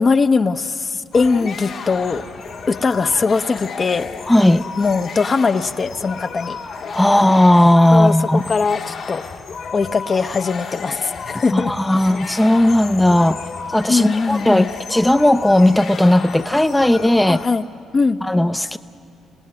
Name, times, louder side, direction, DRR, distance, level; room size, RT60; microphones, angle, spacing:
voice 1, 0.0-2.2 2.7-4.1 4.8-6.6 7.9-9.3 9.7-11.7 13.9-14.7 17.3-17.7 17.9-18.2, left 4 dB, 40° left, 9 dB, 0.8 m, -20 dB
sound 1, 1.1-17.5, left 5 dB, 65° left, 2.0 m, -33 dB
voice 2, 4.3-4.6 6.9-8.4 11.5-13.4 13.7-17.4 18.2-18.8, left 1 dB, 10° left, 9 dB, 0.6 m, -15 dB
27.5 x 18.0 x 9.7 m, 2.6 s
supercardioid pair, 65°, 0 cm